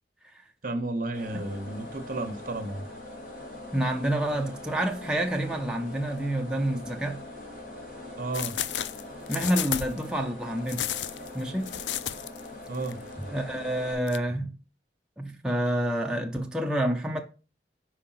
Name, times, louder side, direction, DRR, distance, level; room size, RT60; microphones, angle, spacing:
voice 1, 0.6-2.9 8.2-8.6 12.7-13.0, right 2 dB, 50° right, 0.9 m, -32 dB
sound 1, 1.1-13.9, left 1 dB, 50° left, 2.3 m, -42 dB
voice 2, 3.7-7.2 9.3-10.9 11.3-11.7 13.3-14.5 15.2-17.2, right 1 dB, 5° right, 0.5 m, -28 dB
sound 2, 8.3-10.0 10.7-12.5 12.7-12.9 14.1-14.2, left 11 dB, 90° left, 0.4 m, -32 dB
5.1 x 4.6 x 5.7 m
head